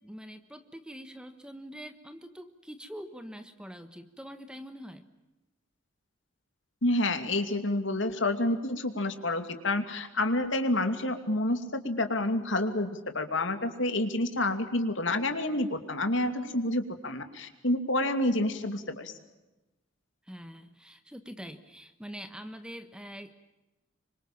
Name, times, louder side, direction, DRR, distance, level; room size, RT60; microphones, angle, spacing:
voice 1, 0.0-5.1 20.2-23.3, equal, 5° right, 9 dB, 1.3 m, -44 dB
voice 2, 6.8-19.1, left 1 dB, 65° left, 7 dB, 2.8 m, -29 dB
27.5 x 25.0 x 7.4 m, 1.0 s
head